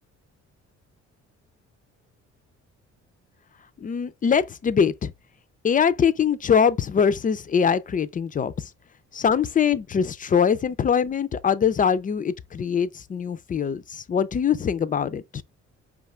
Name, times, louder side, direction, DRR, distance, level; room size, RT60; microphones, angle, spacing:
voice 1, 3.8-5.1 5.6-8.7 9.1-15.4, left 7 dB, 30° left, 0.4 m, -23 dB
5.0 x 2.4 x 3.0 m
cardioid pair, 90°, 30 cm